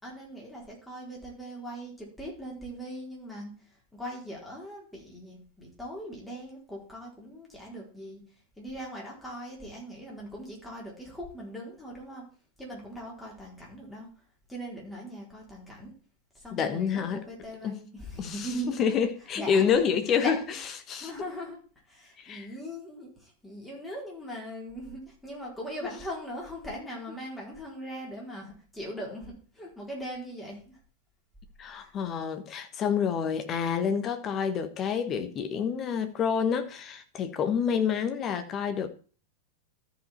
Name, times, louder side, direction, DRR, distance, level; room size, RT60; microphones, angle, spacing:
voice 1, 0.0-3.5 3.9-8.2 8.6-12.2 12.6-14.1 14.5-15.9 16.3-18.8 19.4-19.7 20.2-20.4 20.9-21.6 21.9-30.8 31.8-31.9, equal, 5° left, 4.1 m, -40 dB
voice 2, 16.5-17.2 17.6-17.8 18.2-18.5 18.8-20.4 20.9-21.1 22.2-22.5 31.6-38.9, left 7 dB, 30° left, 1.2 m, -28 dB
13.5 x 5.3 x 4.3 m
figure-of-eight pair, 90°, 0 cm